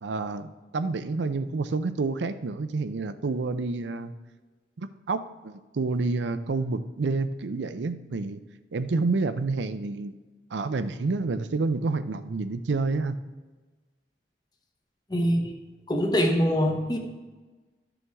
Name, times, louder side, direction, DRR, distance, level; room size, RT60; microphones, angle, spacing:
voice 1, 0.0-4.1 4.8-8.4 8.7-10.1 10.5-13.2, right 3 dB, 90° right, 11 dB, 0.5 m, -29 dB
voice 2, 15.1-15.5 15.9-17.0, equal, 25° left, 4 dB, 0.9 m, -24 dB
12.0 x 7.0 x 3.5 m, 1.3 s
head